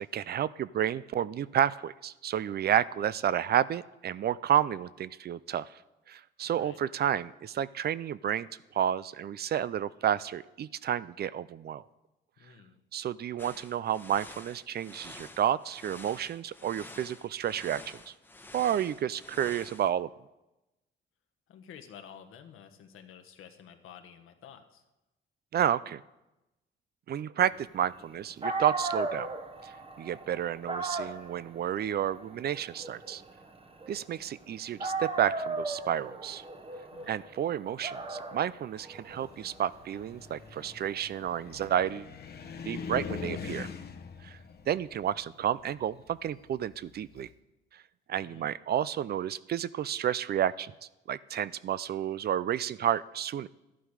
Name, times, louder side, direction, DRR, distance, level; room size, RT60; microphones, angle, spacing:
voice 1, 0.0-5.7 6.1-8.5 8.7-11.8 12.9-18.1 18.5-20.1 25.5-26.0 27.1-29.3 29.6-29.7 30.0-33.2 33.9-36.4 37.1-42.1 42.6-43.7 44.2-44.4 44.7-47.3 48.1-50.7 51.1-53.5, right 10 dB, 50° right, 18 dB, 0.4 m, -31 dB
voice 2, 6.5-6.9 12.4-12.8 21.5-24.8 36.9-37.2 48.2-48.6, left 8 dB, 80° left, 7 dB, 1.4 m, -51 dB
sound 1, 13.4-19.9, left 2 dB, 10° left, 1.1 m, -49 dB
Dog, 28.1-28.2 28.4-34.4 34.8-41.6, right 3 dB, 25° right, 1.1 m, -37 dB
Car, 39.1-47.3, left 6 dB, 50° left, 1.0 m, -43 dB
13.0 x 11.0 x 4.9 m, 0.98 s
cardioid pair, 110°, 21 cm